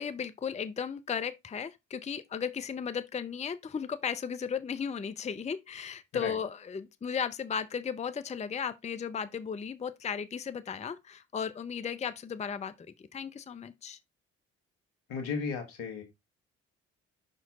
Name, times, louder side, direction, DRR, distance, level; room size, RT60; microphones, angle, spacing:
voice 1, 0.0-12.7 13.1-14.0, left 7 dB, 20° left, 0.6 m, -35 dB
voice 2, 15.1-16.0, left 5 dB, 75° left, 1.8 m, -34 dB
5.8 x 4.5 x 4.1 m
hypercardioid pair, 45°, 38 cm